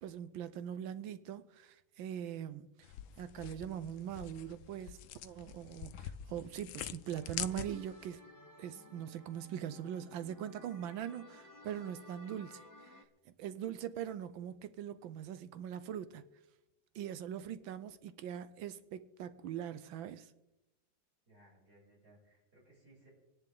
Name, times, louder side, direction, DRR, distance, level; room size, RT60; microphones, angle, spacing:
voice 1, 0.0-8.2 8.6-16.2 16.9-20.3, right 9 dB, 80° right, 1.4 m, -42 dB
sound 1, 2.8-8.1, left 11 dB, 80° left, 1.4 m, -45 dB
sound 2, 7.2-13.0, left 1 dB, 15° left, 0.6 m, -57 dB
voice 2, 21.3-23.1, right 1 dB, 50° right, 7.9 m, -63 dB
26.0 x 10.5 x 3.8 m
omnidirectional pair, 2.2 m